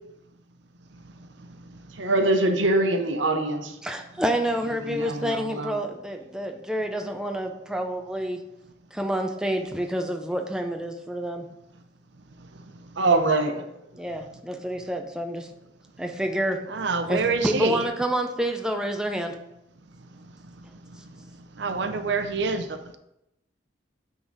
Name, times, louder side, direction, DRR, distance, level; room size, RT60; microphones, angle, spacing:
voice 1, 2.0-3.7 4.9-5.8 13.0-13.6, right 2 dB, 85° right, 5 dB, 0.9 m, -23 dB
voice 2, 3.8-8.4 8.9-11.5 14.0-15.5 16.0-16.6 17.1-19.4, equal, 5° right, 3 dB, 0.4 m, -28 dB
voice 3, 16.7-17.9 21.6-23.0, right 4 dB, 70° right, 9 dB, 0.6 m, -26 dB
9.3 x 3.9 x 4.0 m, 0.85 s
head